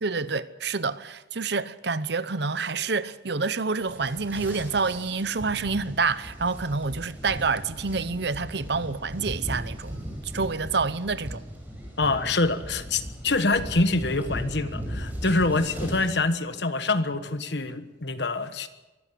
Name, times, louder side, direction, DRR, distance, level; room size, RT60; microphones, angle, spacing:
voice 1, 0.0-10.0 10.3-11.4, right 4 dB, 60° right, 0.9 m, -28 dB
sound 1, 3.7-16.1, equal, 10° right, 6.0 m, -37 dB
voice 2, 12.0-18.7, left 3 dB, 65° left, 1.4 m, -25 dB
23.5 x 14.5 x 8.4 m
head